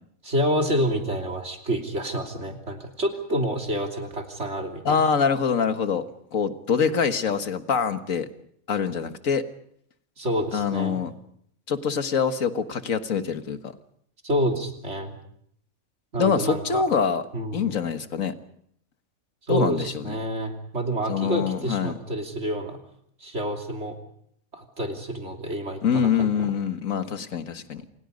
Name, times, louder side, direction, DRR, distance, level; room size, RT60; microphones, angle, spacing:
voice 1, 0.2-5.0 10.2-11.0 14.2-15.2 16.1-16.8 17.3-17.7 19.5-22.8 23.2-23.9 24.5-26.5, equal, 55° right, 3 dB, 3.3 m, -28 dB
voice 2, 4.9-6.1 6.3-8.3 8.7-9.4 10.5-11.1 11.7-13.7 16.2-17.2 17.5-18.3 19.5-20.2 21.1-21.9 25.8-27.8, left 6 dB, 75° left, 8 dB, 1.9 m, -24 dB
28.5 x 28.5 x 5.3 m, 0.69 s
omnidirectional pair, 1.4 m